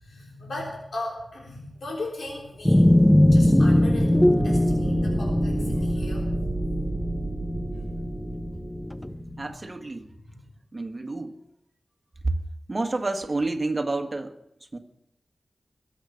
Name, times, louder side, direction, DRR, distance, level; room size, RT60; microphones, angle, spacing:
voice 1, 0.0-2.8 3.3-6.2 7.7-7.9 9.1-9.4, left 2 dB, 80° left, -2 dB, 3.6 m, -38 dB
sound 1, 2.6-9.2, left 1 dB, 10° left, 0.5 m, -21 dB
sound 2, 3.3-9.0, right 4 dB, 70° right, 1.1 m, -32 dB
voice 2, 9.4-10.1 10.7-11.4 12.2-12.4 12.7-14.3 14.7-14.8, right 2 dB, 35° right, 6 dB, 1.6 m, -29 dB
21.5 x 8.3 x 6.6 m, 0.80 s
wide cardioid pair, 90°, 0 cm